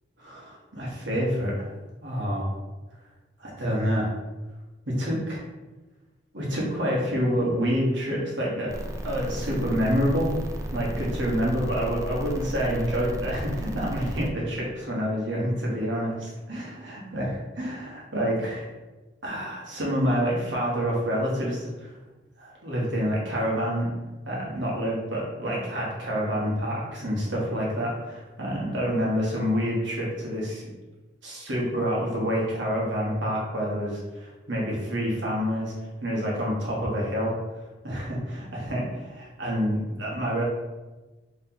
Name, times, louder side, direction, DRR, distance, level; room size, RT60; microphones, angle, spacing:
voice 1, 0.2-1.7 2.0-2.5 3.4-4.1 4.9-5.4 6.3-8.8 9.0-10.3 10.7-17.3 17.6-18.7 19.2-21.9 22.4-23.9 24.3-30.7 31.2-35.7 36.0-37.3 37.8-40.4, equal, 85° right, -4 dB, 1.2 m, -27 dB
sound 1, 8.7-14.3, right 1 dB, 20° right, 0.3 m, -34 dB
3.8 x 3.2 x 2.9 m, 1.2 s
head